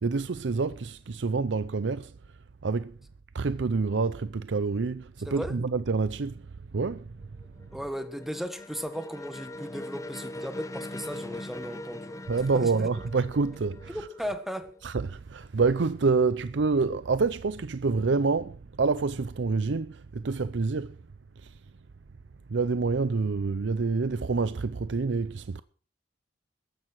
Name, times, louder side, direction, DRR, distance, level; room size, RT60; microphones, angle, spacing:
voice 1, 0.0-2.1 2.6-3.0 3.3-7.4 12.3-14.3 14.8-21.0 21.4-21.6 22.5-25.6, right 4 dB, 80° right, 0.6 m, -27 dB
sound 1, 7.2-15.0, left 1 dB, 20° left, 0.8 m, -41 dB
voice 2, 7.7-12.2 12.5-12.7 13.9-14.7, equal, ahead, 1.4 m, -36 dB
14.0 x 11.0 x 6.1 m
head